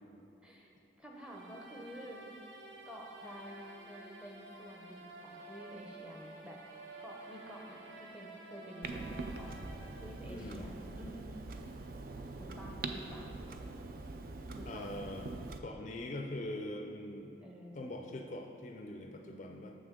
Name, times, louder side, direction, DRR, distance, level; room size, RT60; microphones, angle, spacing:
voice 1, 1.0-2.2 2.9-6.6 7.0-9.6 10.0-11.3 12.4-13.3 14.5-14.9 17.4-17.8, equal, 5° right, -2 dB, 0.6 m, -50 dB
sound 1, 1.1-11.1, right 2 dB, 80° right, 0.8 m, -52 dB
Clock, 8.8-15.6, right 3 dB, 50° right, 0.4 m, -43 dB
voice 2, 10.3-10.7 14.7-15.3 15.6-17.3 17.7-19.7, left 1 dB, 40° left, 2 dB, 0.4 m, -42 dB
7.1 x 6.0 x 3.7 m, 2.9 s
head